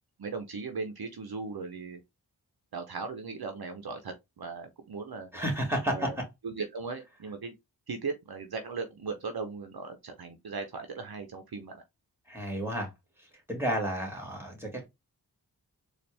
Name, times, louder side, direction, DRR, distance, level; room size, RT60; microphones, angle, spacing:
voice 1, 0.2-2.0 2.7-5.3 5.8-6.2 6.4-7.5 7.9-11.8, right 4 dB, 60° right, 0.7 m, -38 dB
voice 2, 5.3-6.1 12.3-12.9 13.5-14.9, equal, 5° right, 2.2 m, -31 dB
4.1 x 2.5 x 3.3 m
cardioid pair, 40°, 41 cm